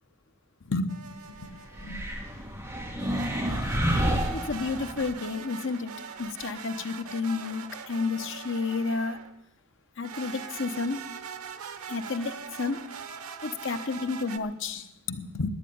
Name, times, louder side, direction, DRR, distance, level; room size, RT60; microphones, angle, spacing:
voice 1, 0.7-1.5 1.8-2.0 4.3-5.9 6.2-9.2 10.0-11.0 11.9-12.8 13.4-15.5, left 4 dB, 60° left, 8 dB, 1.0 m, -31 dB
sound 1, 0.9-1.9 3.0-9.4 10.0-14.4, right 6 dB, 90° right, 0.9 m, -42 dB
sound 2, 1.7-5.1, equal, 10° right, 1.9 m, -29 dB
10.5 x 9.7 x 9.3 m, 0.86 s
head